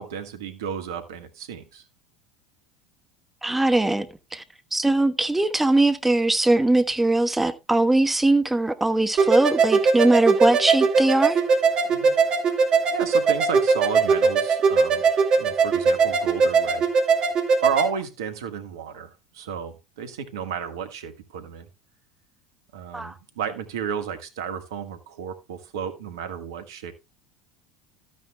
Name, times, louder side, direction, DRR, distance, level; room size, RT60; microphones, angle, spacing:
voice 1, 0.0-1.8 11.9-12.2 12.6-15.0 15.4-16.9 17.2-17.3 17.6-21.7 22.7-26.9, right 7 dB, 70° right, 1.6 m, -33 dB
voice 2, 3.4-4.4 4.7-11.4 22.9-23.1, right 2 dB, 10° right, 1.2 m, -21 dB
sound 1, 9.2-17.9, right 5 dB, 40° right, 2.2 m, -20 dB
13.0 x 9.3 x 2.3 m
hypercardioid pair, 75°, 2 cm